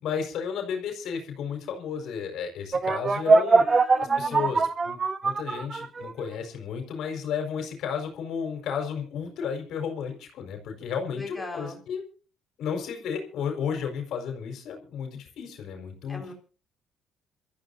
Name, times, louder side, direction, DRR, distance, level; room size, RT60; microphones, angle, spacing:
voice 1, 0.0-3.7 4.1-12.0 12.6-16.3, left 7 dB, 70° left, 3 dB, 4.8 m, -33 dB
sound 1, 2.7-6.2, right 4 dB, 30° right, 1.3 m, -22 dB
voice 2, 3.6-4.5 11.1-11.8 16.1-16.3, left 2 dB, 10° left, 2 dB, 4.8 m, -39 dB
27.5 x 14.0 x 2.7 m, 0.36 s
cardioid pair, 105°, 0 cm